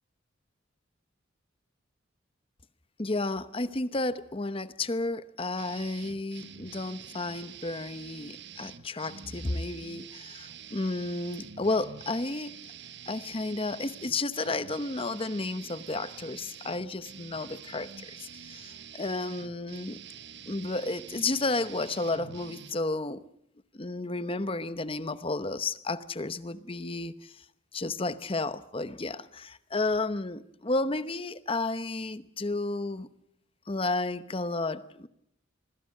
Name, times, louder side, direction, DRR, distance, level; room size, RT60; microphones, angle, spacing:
voice 1, 3.0-12.6 13.1-20.0 20.5-23.3 23.7-27.4 27.7-33.1 33.7-35.1, left 2 dB, 25° left, 13 dB, 0.9 m, -32 dB
sound 1, 5.6-22.7, right 8 dB, 60° right, 1.3 m, -47 dB
27.0 x 21.5 x 6.6 m, 0.73 s
head